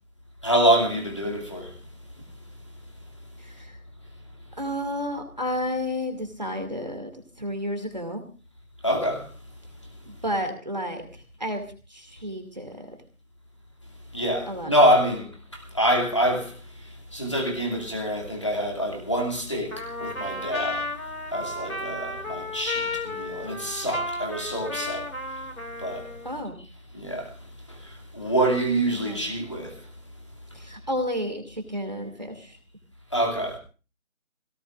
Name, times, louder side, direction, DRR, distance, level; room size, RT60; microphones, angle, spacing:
voice 1, 0.4-1.7 8.8-9.3 14.1-20.9 21.3-25.5 25.8-26.1 26.9-27.3 27.7-29.8 33.1-33.6, right 1 dB, 20° left, 2.5 m, -26 dB
voice 2, 3.4-3.8 4.5-7.1 7.4-8.2 10.1-11.1 11.4-11.6 11.9-13.0 14.5-14.7 26.2-26.6 29.0-29.2 30.5-32.6, equal, 30° right, 2.4 m, -31 dB
Trumpet, 19.7-26.3, left 2 dB, 80° left, 2.6 m, -33 dB
26.0 x 17.5 x 2.5 m
figure-of-eight pair, 175°, 42 cm